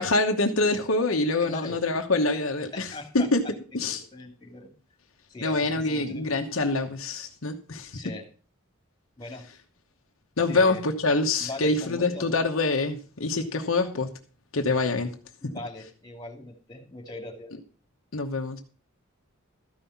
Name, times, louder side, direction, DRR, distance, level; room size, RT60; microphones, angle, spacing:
voice 1, 0.0-2.9 3.1-3.4 3.7-4.0 5.4-8.0 10.4-14.1 14.5-15.1 18.1-18.6, left 3 dB, 65° left, 1.1 m, -25 dB
voice 2, 1.4-1.8 2.7-3.5 4.1-4.7 5.3-6.3 7.9-8.3 9.2-9.5 10.5-10.8 11.4-12.3 15.4-17.5, left 2 dB, 20° left, 2.5 m, -40 dB
13.5 x 5.6 x 7.1 m
head